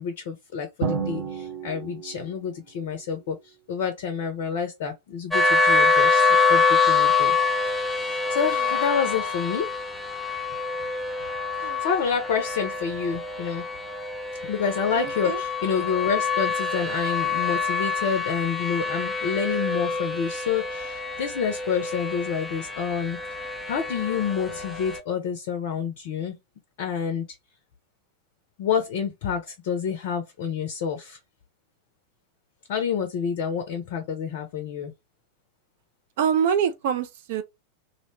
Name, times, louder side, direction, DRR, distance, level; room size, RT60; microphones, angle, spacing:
voice 1, 0.0-7.4 7.9-9.7 11.6-13.7 14.4-23.2 23.7-26.4 26.8-27.2 28.6-31.2 32.7-34.9, left 7 dB, 50° left, 0.5 m, -28 dB
Drum, 0.8-2.5, right 5 dB, 70° right, 1.3 m, -31 dB
sound 1, 5.3-25.0, left 4 dB, 5° left, 0.6 m, -25 dB
voice 2, 15.0-15.4 36.2-37.4, right 8 dB, 50° right, 0.4 m, -25 dB
2.6 x 2.1 x 2.9 m
figure-of-eight pair, 90°, 0 cm